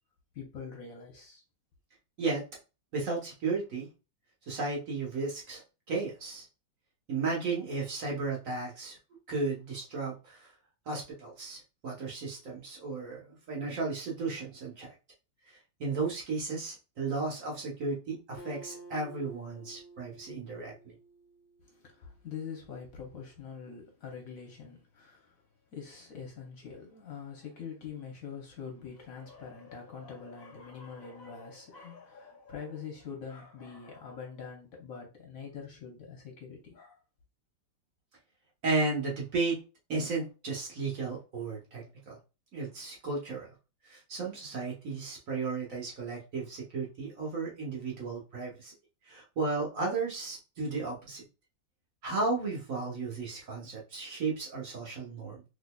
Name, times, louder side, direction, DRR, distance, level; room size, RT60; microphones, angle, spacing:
voice 1, 0.3-1.4 21.6-25.4 25.7-37.0, left 6 dB, 60° left, 1.1 m, -44 dB
voice 2, 2.9-3.9 4.5-5.6 5.9-6.4 7.1-9.0 9.3-10.4 10.9-14.9 15.8-20.9 38.6-39.6 39.9-42.2 42.5-43.5 43.9-48.7 49.1-51.2 52.0-55.4, right 3 dB, 55° right, 1.3 m, -34 dB
Acoustic guitar, 18.4-22.0, right 3 dB, 90° left, 0.5 m, -51 dB
3.8 x 3.0 x 2.2 m
omnidirectional pair, 1.8 m